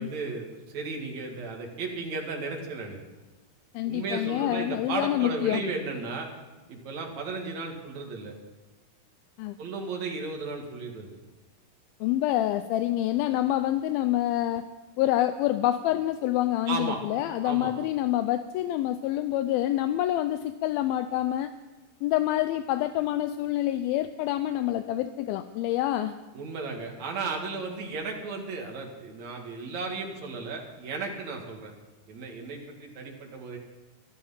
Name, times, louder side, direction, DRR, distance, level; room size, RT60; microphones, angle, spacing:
voice 1, 0.0-3.0 3.9-6.3 6.7-8.4 9.6-11.1 16.7-17.0 17.4-17.7 26.3-31.7 32.1-33.6, right 4 dB, 50° right, 1 dB, 2.8 m, -34 dB
voice 2, 3.7-5.6 9.4-9.6 12.0-14.7 15.0-21.5 22.0-26.1, left 13 dB, 85° left, 11 dB, 2.1 m, -27 dB
13.0 x 12.5 x 5.6 m, 1.2 s
omnidirectional pair, 4.7 m